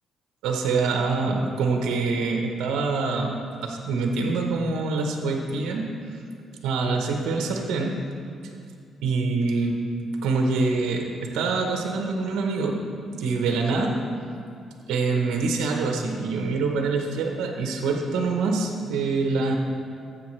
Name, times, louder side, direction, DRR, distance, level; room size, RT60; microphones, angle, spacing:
voice 1, 0.4-5.9 6.6-8.0 8.4-8.5 9.0-9.8 10.2-12.8 13.1-14.0 14.9-19.6, right 4 dB, 90° right, 2 dB, 0.9 m, -25 dB
13.0 x 8.0 x 3.2 m, 2.4 s
cardioid pair, 90°, 0 cm